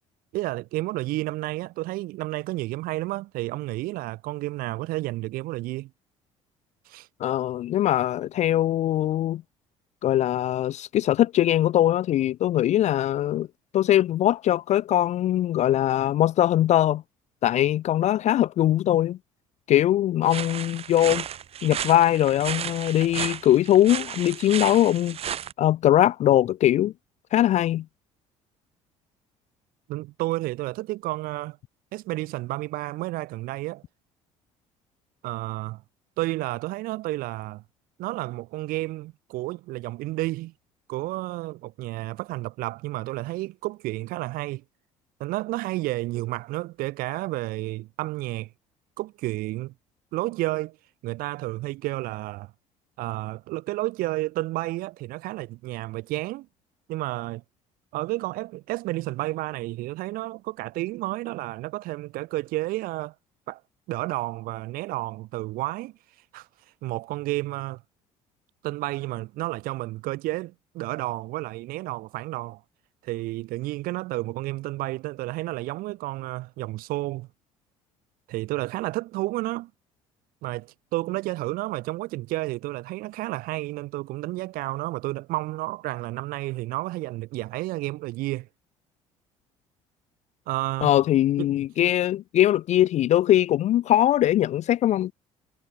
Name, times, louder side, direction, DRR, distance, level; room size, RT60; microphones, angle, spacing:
voice 1, 0.3-5.9 6.8-7.1 29.9-31.6 31.9-33.8 35.2-35.8 36.2-37.6 38.0-40.5 40.9-44.6 45.2-48.5 49.0-49.7 50.1-50.8 51.0-52.5 53.0-56.5 56.9-57.4 57.9-63.1 63.5-63.6 63.9-65.9 66.3-66.5 66.8-67.8 68.6-72.6 73.0-77.3 78.3-79.7 80.4-88.5 90.5-90.9 91.4-91.6, right 19 dB, 55° right, 1.0 m, -31 dB
voice 2, 7.2-9.4 10.0-13.5 13.7-17.0 17.4-19.2 19.7-21.2 21.6-25.2 25.6-26.9 27.3-27.8 90.8-95.1, left 12 dB, 40° left, 0.4 m, -21 dB
sound 1, 20.3-25.5, right 9 dB, 35° right, 0.6 m, -33 dB
figure-of-eight pair, 55°, 17 cm